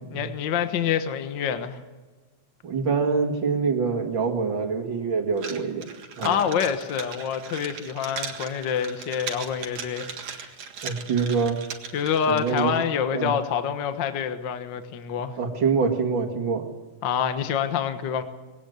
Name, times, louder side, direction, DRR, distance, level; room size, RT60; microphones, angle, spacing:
voice 1, 0.1-1.8 6.2-10.5 11.9-15.4 17.0-18.2, left 8 dB, 50° left, 9 dB, 1.5 m, -27 dB
voice 2, 2.6-5.9 6.2-6.4 10.8-11.6 12.3-12.8 13.1-13.3 15.4-16.7, right 5 dB, 45° right, 4 dB, 2.5 m, -25 dB
sound 1, 5.4-12.9, right 6 dB, 65° right, 2.9 m, -38 dB
20.5 x 17.5 x 8.0 m, 1.3 s
omnidirectional pair, 3.4 m